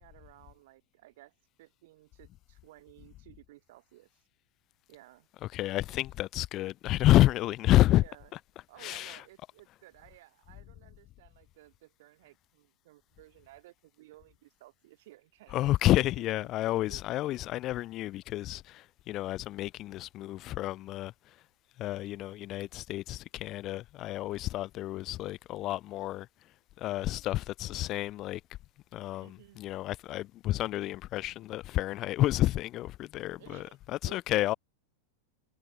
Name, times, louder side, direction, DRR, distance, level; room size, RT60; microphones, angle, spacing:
voice 1, 0.0-4.2 4.9-5.3 8.0-8.3 8.7-17.5 29.2-29.6 33.3-33.8 34.1-34.6, right 17 dB, 55° right, 1.8 m, -56 dB
voice 2, 5.5-8.0 8.8-9.2 15.5-21.1 21.8-26.3 26.8-28.4 28.9-34.5, left 15 dB, 35° left, 0.3 m, -29 dB
figure-of-eight pair, 90°, 0 cm